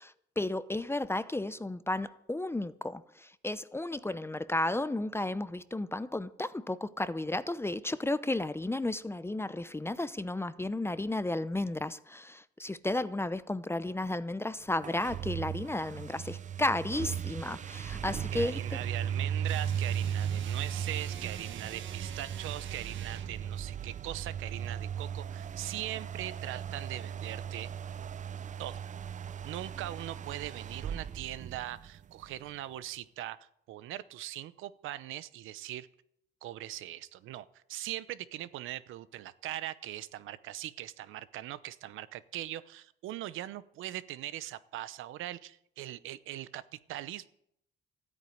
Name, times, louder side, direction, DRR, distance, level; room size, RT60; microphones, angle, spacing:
voice 1, 0.0-18.8, left 2 dB, 10° left, 0.7 m, -33 dB
sound 1, 14.8-32.3, right 9 dB, 40° right, 0.5 m, -37 dB
voice 2, 18.3-27.7 28.6-28.8 29.4-35.9 36.4-46.6 46.9-47.3, right 14 dB, 90° right, 0.8 m, -41 dB
sound 2, 19.4-23.4, right 8 dB, 75° right, 1.5 m, -45 dB
13.5 x 9.3 x 9.3 m
cardioid pair, 90°, 20 cm